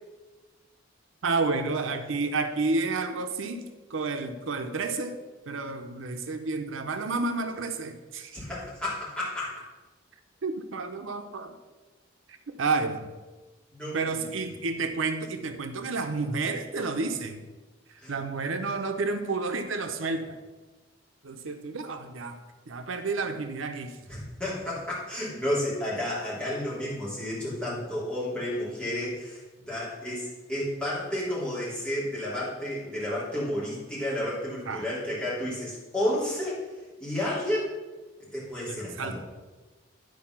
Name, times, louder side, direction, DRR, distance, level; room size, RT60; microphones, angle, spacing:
voice 1, 1.2-5.2 5.5-8.4 10.4-11.5 12.5-13.1 13.9-17.4 18.1-20.4 21.2-22.4 22.7-24.0 34.7-34.9 38.7-39.2, right 3 dB, 85° right, 7 dB, 0.7 m, -30 dB
voice 2, 8.3-9.6 13.7-14.3 18.0-18.1 24.1-36.6 37.0-37.7 38.3-39.2, left 1 dB, 5° left, -9 dB, 3.3 m, -31 dB
10.5 x 4.8 x 5.8 m, 1.2 s
head